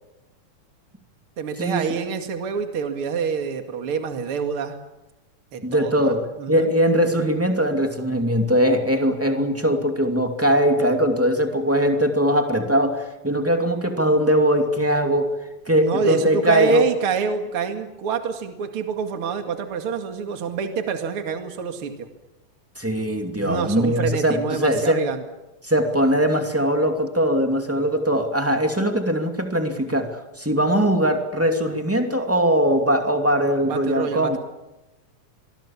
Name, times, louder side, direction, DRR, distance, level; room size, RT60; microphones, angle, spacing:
voice 1, 1.4-4.8 5.5-6.7 15.8-22.1 23.4-25.2 33.6-34.4, right 6 dB, 45° right, 6 dB, 2.7 m, -27 dB
voice 2, 5.6-6.2 6.5-15.3 15.7-16.9 22.8-25.0 25.6-34.4, equal, 5° right, 4 dB, 2.1 m, -21 dB
25.5 x 22.5 x 7.4 m, 0.99 s
omnidirectional pair, 3.6 m